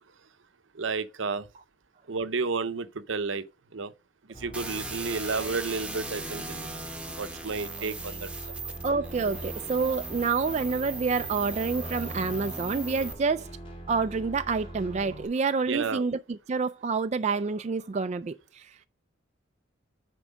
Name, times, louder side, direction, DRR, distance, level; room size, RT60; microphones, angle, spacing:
voice 1, 0.7-1.5 2.1-3.5 3.7-3.9 4.4-6.7 7.2-8.6 15.7-16.0, right 4 dB, 70° right, 0.7 m, -31 dB
sound 1, 4.3-15.2, right 1 dB, 30° left, 2.4 m, -44 dB
sound 2, 4.5-13.1, right 2 dB, 5° right, 1.0 m, -38 dB
voice 2, 8.8-13.5 13.9-18.9, right 4 dB, 35° right, 0.3 m, -28 dB
9.9 x 4.5 x 5.1 m
head